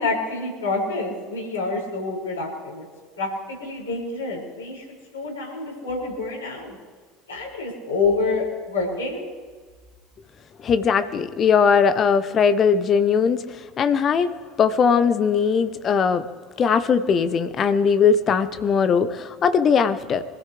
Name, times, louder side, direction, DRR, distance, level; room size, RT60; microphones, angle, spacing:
voice 1, 0.0-2.9 3.2-4.8 5.1-6.8 7.3-9.2, left 3 dB, 85° left, -7 dB, 6.6 m, -27 dB
voice 2, 10.6-16.3 16.6-20.2, left 6 dB, 40° left, 11 dB, 1.0 m, -20 dB
25.0 x 15.5 x 3.5 m, 1.4 s
figure-of-eight pair, 65°, 0 cm